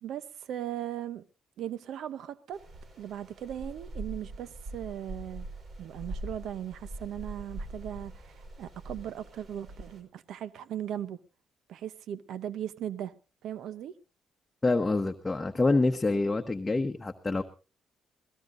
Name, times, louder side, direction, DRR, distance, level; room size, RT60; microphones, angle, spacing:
voice 1, 0.0-1.2 1.6-2.6 3.0-5.5 5.8-11.2 11.7-13.1 13.4-13.9, right 10 dB, 75° right, 0.7 m, -38 dB
sound 1, 2.5-10.0, right 1 dB, 50° right, 4.8 m, -43 dB
voice 2, 14.6-17.4, left 2 dB, 20° left, 1.1 m, -26 dB
22.5 x 17.5 x 2.6 m
cardioid pair, 90°, 0 cm